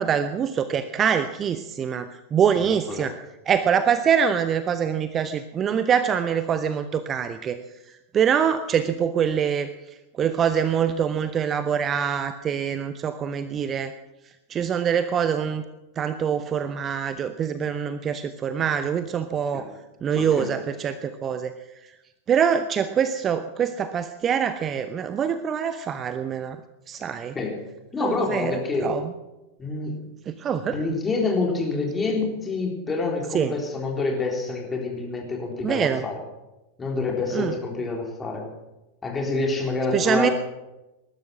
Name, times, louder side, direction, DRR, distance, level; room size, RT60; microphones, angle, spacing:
voice 1, 0.0-3.1 3.5-7.6 8.1-9.7 10.2-13.9 14.5-15.6 16.0-19.7 20.0-21.5 22.3-26.6 26.9-27.3 28.0-29.0 30.3-30.7 33.3-33.5 35.6-36.0 37.3-37.5 39.9-40.3, right 7 dB, 25° right, 11 dB, 0.8 m, -24 dB
voice 2, 20.1-20.5 27.3-27.6 27.9-28.9 29.6-29.9 30.7-36.2 36.8-38.4 39.0-40.3, left 3 dB, 15° left, 1 dB, 3.9 m, -27 dB
19.5 x 12.0 x 6.2 m, 1.0 s
figure-of-eight pair, 90°, 0 cm